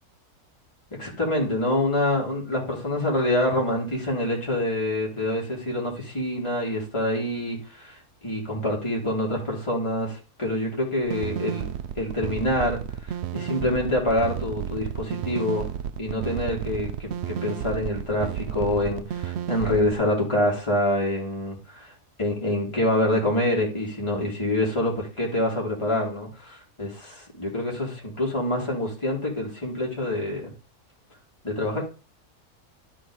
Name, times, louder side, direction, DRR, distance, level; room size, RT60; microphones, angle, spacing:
voice 1, 1.0-8.0 8.2-11.6 12.0-15.7 16.0-21.9 22.2-30.5 31.4-31.8, left 1 dB, 20° left, -2 dB, 2.7 m, -26 dB
sound 1, 11.1-19.9, right 9 dB, 65° right, 0.7 m, -32 dB
11.5 x 4.5 x 4.8 m, 0.33 s
omnidirectional pair, 1.6 m